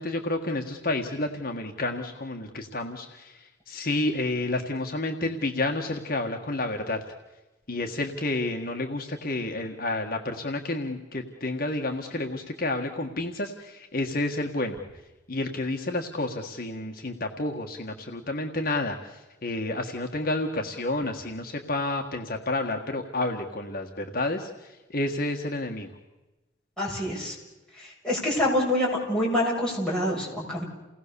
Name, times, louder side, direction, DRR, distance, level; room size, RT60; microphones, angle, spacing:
voice 1, 0.0-3.3 3.7-7.0 7.7-14.8 15.3-19.0 19.4-24.5 24.9-25.9, left 2 dB, 50° left, 2 dB, 1.7 m, -30 dB
voice 2, 26.8-27.3 27.8-30.6, left 1 dB, 5° left, -5 dB, 7.1 m, -26 dB
29.5 x 19.0 x 7.0 m, 1.1 s
head